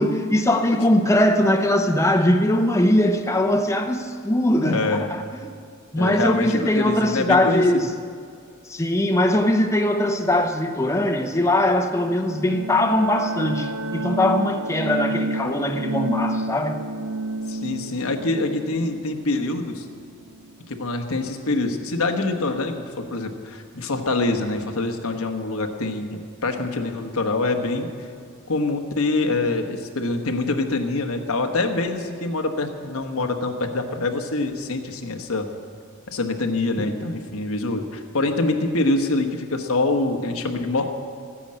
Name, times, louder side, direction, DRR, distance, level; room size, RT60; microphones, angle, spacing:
voice 1, 0.0-5.6 5.9-7.9 8.7-16.8, left 1 dB, 15° left, 0.7 m, -21 dB
voice 2, 4.6-5.1 5.9-7.6 17.5-19.9 20.7-28.1 28.5-35.5 36.1-40.9, left 2 dB, 90° left, 1.3 m, -25 dB
sound 1, 12.0-20.5, right 2 dB, 85° right, 0.5 m, -30 dB
14.0 x 10.0 x 7.6 m
head